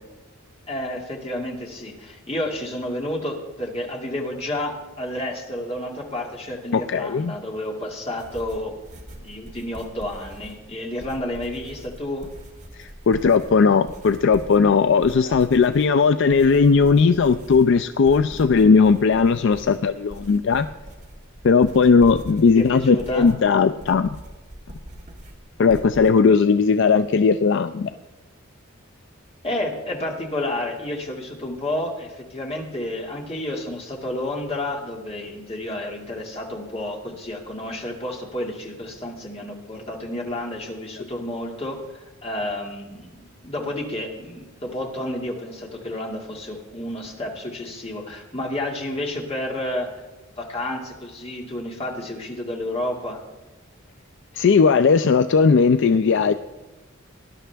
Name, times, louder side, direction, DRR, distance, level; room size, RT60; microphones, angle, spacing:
voice 1, 0.7-8.7 9.2-12.3 15.2-15.3 22.6-23.3 29.4-50.1 50.4-53.2, left 1 dB, 25° left, 0 dB, 2.1 m, -30 dB
voice 2, 6.7-7.3 12.8-20.7 21.4-24.2 25.6-27.9 54.3-56.3, left 5 dB, 55° left, 10 dB, 0.4 m, -17 dB
sound 1, 8.2-26.1, equal, 35° right, 1.5 m, -42 dB
19.0 x 11.0 x 3.4 m, 1.2 s
head